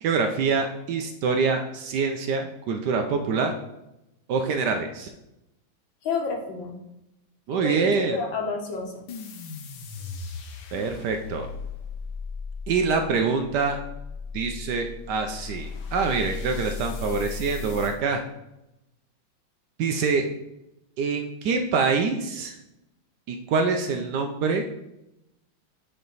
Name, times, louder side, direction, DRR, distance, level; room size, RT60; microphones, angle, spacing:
voice 1, 0.0-3.5 4.3-5.1 7.5-8.2 10.7-11.5 12.7-13.8 14.3-18.2 19.8-20.3 21.0-22.6 23.3-24.6, right 4 dB, 70° right, 5 dB, 1.0 m, -25 dB
voice 2, 6.0-6.7 7.6-8.9 10.8-10.9, left 4 dB, 75° left, 1 dB, 1.8 m, -30 dB
sound 1, 9.1-18.0, left 5 dB, 90° left, 1.5 m, -37 dB
8.2 x 3.4 x 3.9 m, 0.89 s
omnidirectional pair, 2.1 m